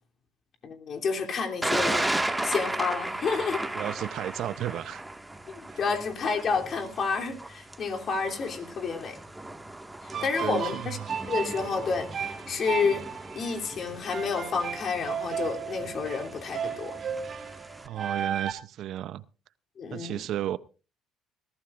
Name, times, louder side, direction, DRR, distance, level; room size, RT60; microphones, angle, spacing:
voice 1, 0.6-2.1 2.4-3.6 5.5-9.2 10.0-11.0 11.3-13.0 13.3-17.0 19.8-20.2, left 5 dB, 50° left, 3.1 m, -30 dB
Thunder, 1.6-17.9, right 1 dB, 10° right, 1.8 m, -36 dB
voice 2, 3.7-5.0 5.7-5.8 10.1-11.0 17.8-19.2 19.9-20.6, right 12 dB, 65° right, 0.6 m, -33 dB
sound 1, 10.1-18.5, right 7 dB, 45° right, 3.0 m, -35 dB
20.5 x 15.5 x 2.5 m
hypercardioid pair, 65°, 0 cm